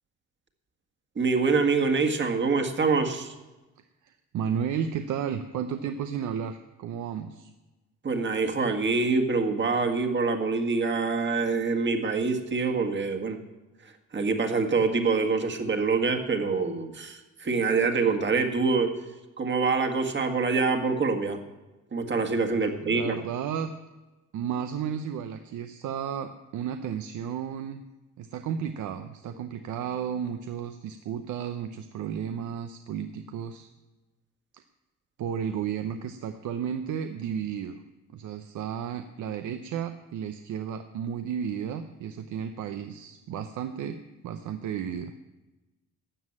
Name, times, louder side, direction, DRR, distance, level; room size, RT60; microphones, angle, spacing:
voice 1, 1.2-3.3 8.0-13.4 14.1-18.9 19.4-21.4 21.9-23.1, right 4 dB, 40° right, 4 dB, 1.8 m, -25 dB
voice 2, 4.0-7.5 22.8-23.7 24.3-27.8 28.2-33.7 34.5-34.6 35.2-37.8 38.1-45.1, right 8 dB, 75° right, 7 dB, 0.8 m, -33 dB
12.5 x 7.4 x 8.6 m, 1.1 s
cardioid pair, 90°, 30 cm